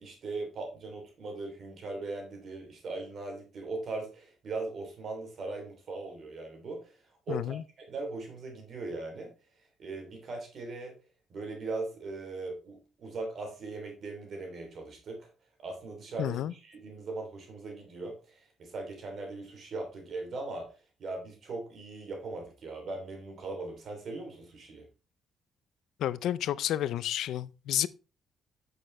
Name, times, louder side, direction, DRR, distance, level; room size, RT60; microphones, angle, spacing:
voice 1, 0.0-9.3 9.8-11.0 11.3-15.3 15.6-20.7 21.0-24.8, right 3 dB, 55° right, 3.1 m, -39 dB
voice 2, 7.3-7.6 16.2-16.5 26.0-27.9, left 12 dB, 80° left, 0.4 m, -30 dB
8.6 x 6.7 x 3.2 m
cardioid pair, 90°, 0 cm